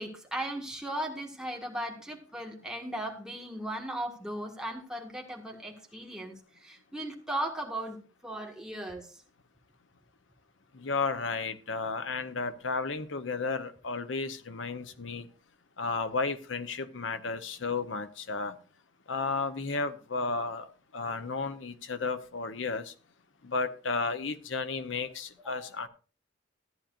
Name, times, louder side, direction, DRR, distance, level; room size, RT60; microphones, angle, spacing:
voice 1, 0.0-9.2 25.4-25.7, right 1 dB, 5° right, 1 dB, 1.7 m, -37 dB
voice 2, 10.7-15.3 15.8-18.5 19.1-20.7 20.9-22.9 23.4-25.9, left 4 dB, 75° left, 10 dB, 0.9 m, -33 dB
14.5 x 10.0 x 2.6 m, 0.37 s
head